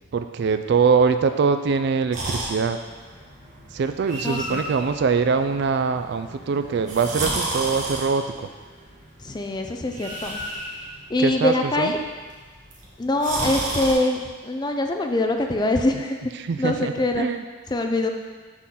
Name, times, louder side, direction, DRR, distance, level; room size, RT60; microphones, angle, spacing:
voice 1, 0.1-2.8 3.7-8.5 11.2-11.9 16.4-17.4, right 5 dB, 55° right, 9 dB, 0.3 m, -23 dB
sound 1, 2.1-13.9, right 1 dB, 40° right, 1.2 m, -33 dB
voice 2, 4.2-4.6 9.2-10.4 11.1-12.0 13.0-16.2 16.6-17.3 17.7-18.1, left 2 dB, 20° left, 4 dB, 0.4 m, -24 dB
6.2 x 3.8 x 5.7 m, 1.4 s
head